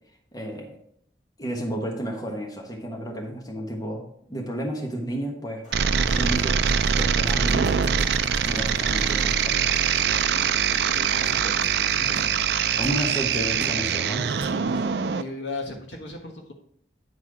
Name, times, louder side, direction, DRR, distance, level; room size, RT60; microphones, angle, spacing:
voice 1, 0.3-0.8 1.4-5.6 6.0-7.9 8.4-9.6 12.2-12.3 12.8-14.8, equal, 20° left, 1 dB, 1.2 m, -32 dB
Rain, 5.6-13.5, equal, 45° left, 2.4 m, -47 dB
sound 1, 5.7-15.2, right 7 dB, 65° right, 0.4 m, -23 dB
sound 2, 6.1-15.0, right 1 dB, 25° right, 0.8 m, -44 dB
voice 2, 10.7-11.9 12.5-12.8 15.1-16.5, left 3 dB, 85° left, 2 dB, 1.4 m, -37 dB
9.5 x 4.2 x 4.9 m, 0.66 s
head